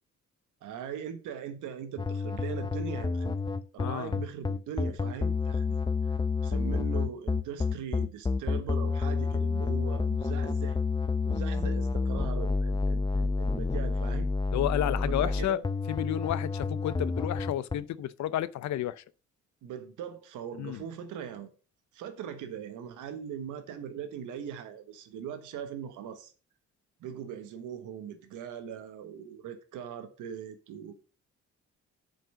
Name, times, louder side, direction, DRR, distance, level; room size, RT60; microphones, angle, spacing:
voice 1, 0.6-3.4 3.7-6.1 6.4-10.8 11.2-14.3 14.9-15.6 19.6-21.5 21.9-26.3 27.0-31.0, right 8 dB, 90° right, 1.3 m, -40 dB
sound 1, 2.0-17.8, left 4 dB, 15° left, 0.6 m, -29 dB
voice 2, 3.8-4.1 14.5-15.6 15.9-19.0 20.6-20.8, left 12 dB, 65° left, 0.6 m, -31 dB
7.6 x 5.4 x 5.4 m
cardioid pair, 90°, 30 cm